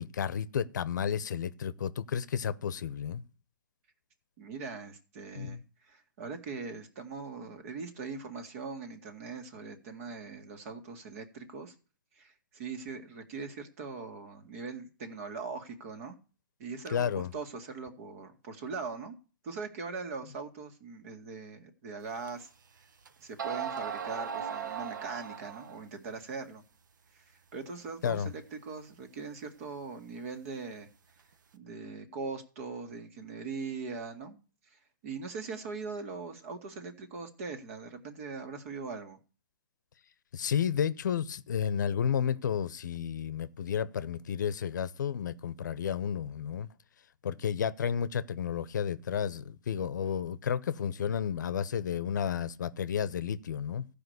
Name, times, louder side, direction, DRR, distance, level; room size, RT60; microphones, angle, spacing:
voice 1, 0.0-3.2 5.4-5.6 16.9-17.3 28.0-28.3 40.3-46.7 47.2-53.8, left 8 dB, 65° left, 0.8 m, -32 dB
voice 2, 4.4-5.6 5.9-11.7 12.2-16.2 16.6-19.2 19.4-22.5 23.2-26.6 27.1-30.9 31.5-34.4 34.7-39.2, right 4 dB, 45° right, 2.1 m, -41 dB
sound 1, 22.3-22.4 23.0-23.1 23.4-25.8, right 7 dB, 70° right, 1.1 m, -37 dB
14.5 x 5.1 x 8.0 m
hypercardioid pair, 140°, 11 cm